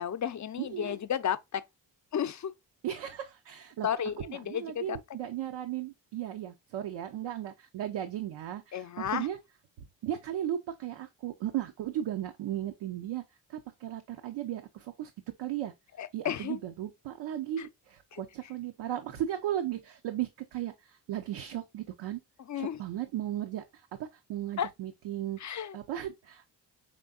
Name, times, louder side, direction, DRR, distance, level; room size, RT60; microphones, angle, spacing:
voice 1, 0.0-1.6 2.1-2.5 3.8-5.0 8.7-9.3 16.0-16.6 17.6-17.7 18.1-18.2 22.5-22.8 24.6-24.7 25.4-25.8, left 9 dB, 40° left, 0.6 m, -33 dB
voice 2, 0.6-1.0 2.8-3.9 4.2-9.4 10.0-13.2 13.5-15.1 15.4-15.7 16.1-22.2 22.6-26.5, right 11 dB, 75° right, 0.7 m, -36 dB
5.2 x 3.4 x 2.3 m
supercardioid pair, 65°, 44 cm